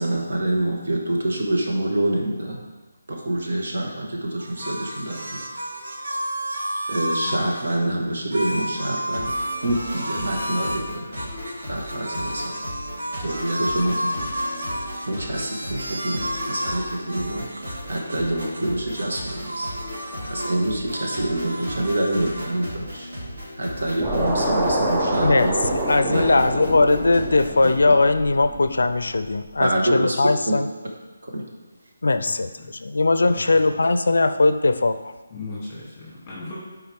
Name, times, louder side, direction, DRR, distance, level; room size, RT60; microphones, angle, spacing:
voice 1, 0.0-2.6 3.1-5.4 6.0-6.1 6.9-11.1 11.7-12.4 13.2-14.3 15.1-19.7 20.0-23.1 23.6-25.5 26.1-26.2 29.6-30.2 30.5-30.6 31.2-31.4, right 1 dB, 55° right, -1 dB, 1.6 m, -26 dB
sound 1, 4.4-7.8 8.3-10.9 11.1-18.7 18.9-20.6 20.8-22.5, equal, 85° right, 1.5 m, -32 dB
sound 2, 9.0-27.7, equal, 35° right, 2.7 m, -36 dB
sound 3, 24.0-29.3, right 1 dB, 5° right, 0.4 m, -26 dB
voice 2, 25.2-30.7 32.0-35.1, left 3 dB, 75° left, 11 dB, 0.4 m, -20 dB
voice 3, 32.2-32.7 33.3-33.8 35.3-36.6, left 3 dB, 10° left, -7 dB, 2.5 m, -38 dB
11.0 x 4.7 x 3.5 m, 1.3 s
hypercardioid pair, 180°, 0 cm